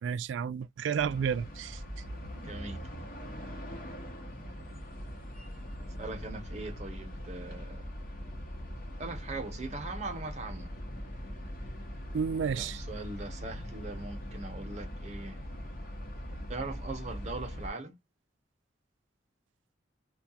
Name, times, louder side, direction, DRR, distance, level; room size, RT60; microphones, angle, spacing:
voice 1, 0.0-1.8 12.1-12.8, right 7 dB, 85° right, 0.3 m, -31 dB
sound 1, 1.0-17.7, equal, 50° left, 0.8 m, -41 dB
voice 2, 2.3-2.9 6.0-7.9 9.0-10.7 12.5-15.4 16.5-18.0, right 2 dB, 35° right, 0.7 m, -40 dB
2.3 x 2.2 x 2.7 m
head